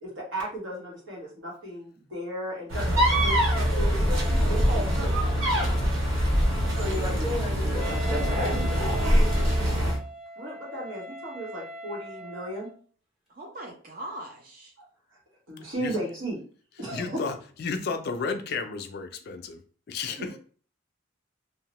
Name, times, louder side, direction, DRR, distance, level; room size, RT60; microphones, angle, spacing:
voice 1, 0.0-4.2 4.5-5.2 6.8-9.4 10.4-12.7 14.8-14.9 15.5-16.4 16.8-17.2, equal, 75° right, -3 dB, 1.2 m, -35 dB
sound 1, 2.7-10.0, equal, 90° right, 0.7 m, -24 dB
voice 2, 7.6-8.0 15.6-16.0 16.9-19.6 19.9-20.4, left 4 dB, 50° left, 7 dB, 0.3 m, -33 dB
Wind instrument woodwind instrument, 7.8-12.8, right 1 dB, ahead, 0.6 m, -41 dB
voice 3, 13.3-14.7 20.2-20.4, right 1 dB, 45° right, 0 dB, 0.5 m, -40 dB
2.7 x 2.1 x 2.9 m, 0.42 s
head